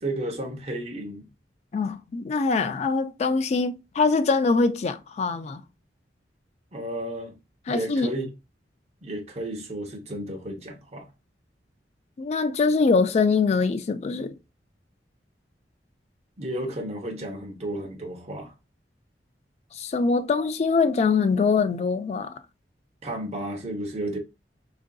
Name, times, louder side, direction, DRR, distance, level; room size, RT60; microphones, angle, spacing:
voice 1, 0.0-1.3 6.7-7.4 7.7-8.3 9.0-11.1 16.4-18.5 23.0-24.2, right 1 dB, 40° right, 0.7 m, -32 dB
voice 2, 1.7-5.6 7.7-8.1 12.2-14.4 19.7-22.4, left 4 dB, 40° left, 0.3 m, -23 dB
3.7 x 2.5 x 2.2 m
head